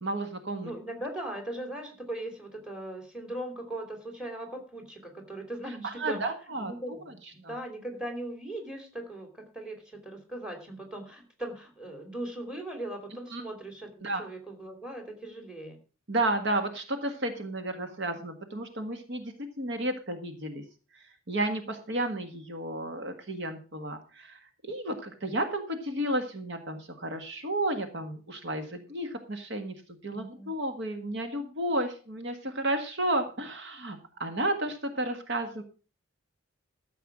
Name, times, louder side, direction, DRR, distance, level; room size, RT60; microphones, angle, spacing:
voice 1, 0.0-0.7 5.8-6.7 7.1-7.2 7.4-7.5 13.3-13.4 14.0-14.3 16.1-20.6 20.9-29.7 30.0-35.6, right 1 dB, 60° right, 7 dB, 1.6 m, -32 dB
voice 2, 0.6-6.2 6.6-13.9 14.2-15.8 30.1-30.5, right 1 dB, 5° right, 5 dB, 3.0 m, -39 dB
13.5 x 7.1 x 6.1 m, 0.37 s
head